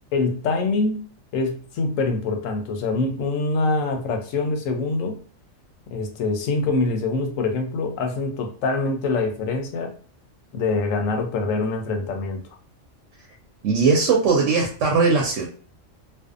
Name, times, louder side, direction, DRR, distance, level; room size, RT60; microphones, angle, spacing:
voice 1, 0.1-1.0 1.3-5.2 5.9-9.9 10.5-12.4, left 3 dB, 85° left, 4 dB, 1.0 m, -24 dB
voice 2, 13.6-15.5, right 4 dB, 75° right, 0 dB, 0.9 m, -19 dB
2.6 x 2.2 x 2.4 m, 0.43 s
omnidirectional pair, 1.3 m